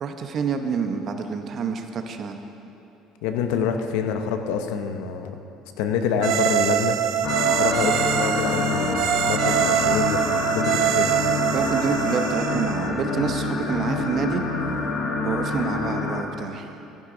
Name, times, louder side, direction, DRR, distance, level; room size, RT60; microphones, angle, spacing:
voice 1, 0.0-2.4 11.5-14.4 15.2-16.7, right 5 dB, 45° right, 6 dB, 0.9 m, -27 dB
voice 2, 3.2-5.4 5.8-7.0 7.6-10.2 10.5-11.1 15.0-15.1, left 6 dB, 90° left, 6 dB, 0.8 m, -26 dB
sound 1, 6.2-12.9, right 10 dB, 70° right, 0.6 m, -24 dB
sound 2, 7.2-16.2, left 3 dB, 55° left, 1.0 m, -27 dB
14.5 x 10.5 x 3.9 m, 2.9 s
cardioid pair, 125°, 0 cm